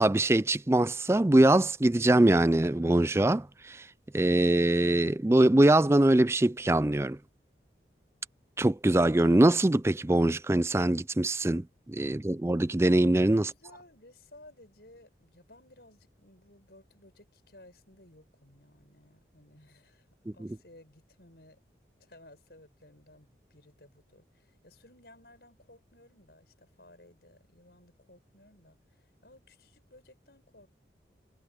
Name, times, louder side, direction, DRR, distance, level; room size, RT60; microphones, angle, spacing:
voice 1, 0.0-3.9 4.1-7.2 8.6-13.5 20.3-20.6, right 1 dB, 15° right, 0.4 m, -23 dB
voice 2, 13.3-20.1 20.3-21.6 22.0-30.7, left 1 dB, 70° left, 5.5 m, -57 dB
head